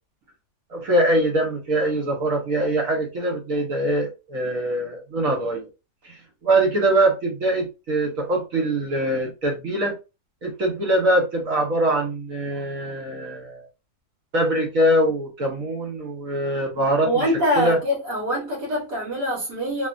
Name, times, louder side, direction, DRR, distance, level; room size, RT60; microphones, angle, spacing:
voice 1, 0.7-5.7 6.0-9.9 10.4-13.7 14.3-17.2 17.6-17.8, right 1 dB, 60° right, 1.3 m, -23 dB
voice 2, 17.0-19.9, equal, 75° right, 1.7 m, -24 dB
3.3 x 2.4 x 2.4 m
omnidirectional pair, 1.7 m